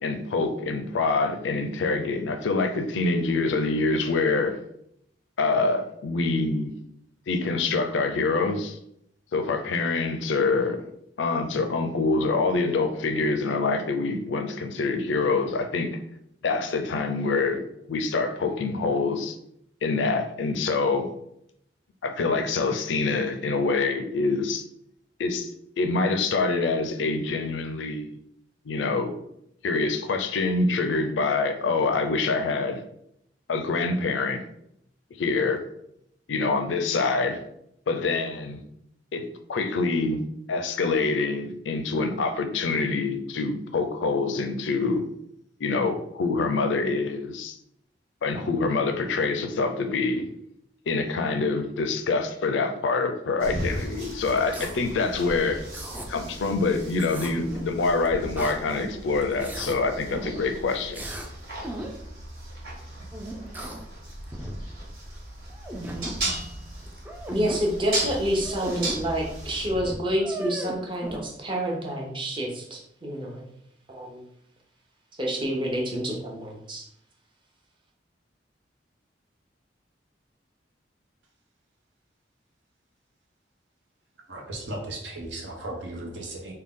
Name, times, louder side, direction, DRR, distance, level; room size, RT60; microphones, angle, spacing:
voice 1, 0.0-4.6 5.4-6.7 7.3-8.8 9.3-10.8 11.2-16.0 16.4-17.6 17.9-19.4 19.8-21.1 22.0-24.6 25.2-25.5 25.8-28.2 28.7-29.1 29.6-32.8 33.5-34.4 35.2-35.6 36.3-37.4 37.9-38.6 39.1-40.2 40.5-45.1 45.6-47.6 48.2-50.2 50.9-55.6 56.1-61.0, left 3 dB, 85° left, 0.4 m, -25 dB
sound 1, 53.4-69.7, right 1 dB, 60° right, 1.4 m, -37 dB
sound 2, 54.4-54.8 55.2-56.1 56.9-57.7 58.1-59.0 59.2-59.7 60.1-60.4 60.9-61.3 61.6-61.9 63.1-63.8 64.1-64.8 65.2-65.3 65.5-66.2 66.9-67.6 68.3-69.0 69.3-69.4 69.6-71.2, right 1 dB, 10° right, 0.4 m, -36 dB
voice 2, 67.3-73.4 73.9-74.2 75.2-76.8, equal, 25° right, 0.7 m, -28 dB
voice 3, 84.3-86.5, right 1 dB, 80° right, 0.9 m, -36 dB
3.5 x 2.2 x 3.6 m
head